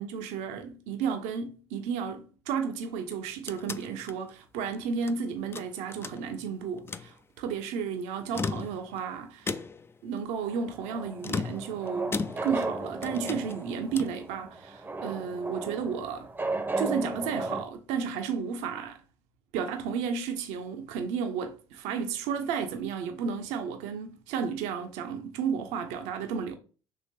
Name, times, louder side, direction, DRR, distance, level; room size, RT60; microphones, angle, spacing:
voice 1, 0.0-9.6 10.0-16.3 16.8-19.0 19.5-26.6, right 6 dB, 65° right, 0.6 m, -33 dB
sound 1, 3.0-5.2 5.5-6.5 6.8-7.1 8.2-9.0 9.5-10.0 11.2-12.7 13.0-14.2, left 4 dB, 20° left, 0.3 m, -36 dB
sound 2, 10.4-17.6, right 2 dB, 15° right, 0.7 m, -35 dB
4.8 x 3.2 x 2.7 m
hypercardioid pair, 60°, 13 cm